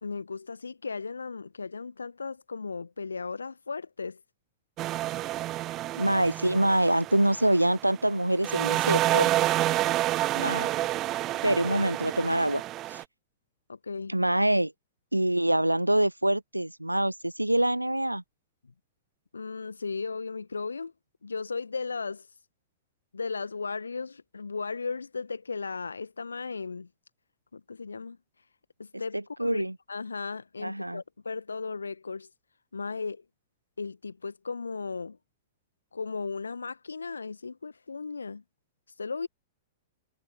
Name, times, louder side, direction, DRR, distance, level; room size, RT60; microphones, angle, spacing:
voice 1, 0.0-4.2 9.8-9.9 11.0-11.1 13.7-14.1 19.3-20.9 21.2-22.3 23.1-26.9 27.5-28.2 28.8-29.6 29.9-32.3 32.7-33.2 33.8-35.2 35.9-38.4 39.0-39.3, left 4 dB, 75° left, 1.5 m, -36 dB
Percussion on metal and shimmer, 4.8-8.2 8.4-13.0, right 15 dB, 30° right, 0.4 m, -29 dB
voice 2, 6.0-9.3 10.3-10.7 11.4-12.6 12.9-13.0 14.1-14.7 15.1-18.2 29.1-29.7 30.6-31.0, right 1 dB, 90° right, 0.5 m, -25 dB
figure-of-eight pair, 100°, 0 cm